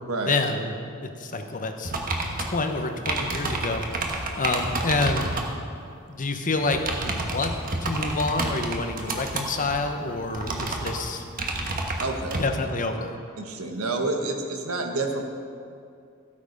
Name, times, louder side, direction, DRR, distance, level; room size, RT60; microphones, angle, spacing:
voice 1, 0.3-1.9 2.4-3.8 4.1-5.3 6.1-7.6 7.8-11.2 12.4-13.2, left 3 dB, 40° left, 5 dB, 0.9 m, -28 dB
sound 1, 1.8-5.5 6.6-12.5, right 2 dB, 40° right, 1.3 m, -30 dB
voice 2, 12.0-12.5 13.4-15.2, right 3 dB, 80° right, 3 dB, 1.4 m, -28 dB
14.0 x 8.6 x 5.3 m, 2.4 s
head